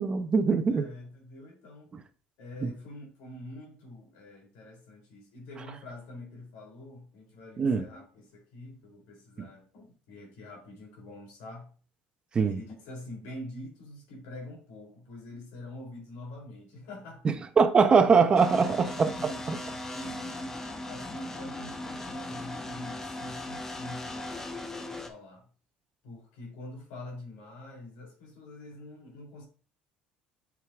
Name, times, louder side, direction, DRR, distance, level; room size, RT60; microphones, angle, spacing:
voice 1, 0.0-0.9 2.6-2.7 7.6-7.8 9.4-9.5 12.3-12.6 17.2-19.2 19.5-19.6, right 5 dB, 25° right, 0.7 m, -22 dB
voice 2, 0.7-1.9 2.4-11.7 12.4-17.3 18.8-20.6 20.9-25.5 26.0-29.4, left 1 dB, 85° left, 3.1 m, -45 dB
sound 1, 18.4-25.1, left 2 dB, 15° left, 0.9 m, -38 dB
8.0 x 6.1 x 2.5 m
cardioid pair, 125°, 4 cm